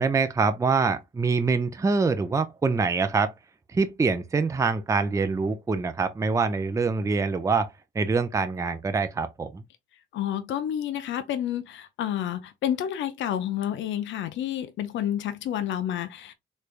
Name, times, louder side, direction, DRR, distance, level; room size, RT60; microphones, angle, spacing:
voice 1, 0.0-3.3 3.7-7.7 8.0-9.6, right 4 dB, 15° right, 0.5 m, -25 dB
voice 2, 10.1-16.3, left 10 dB, 70° left, 0.5 m, -29 dB
3.2 x 3.2 x 2.4 m
cardioid pair, 90°, 20 cm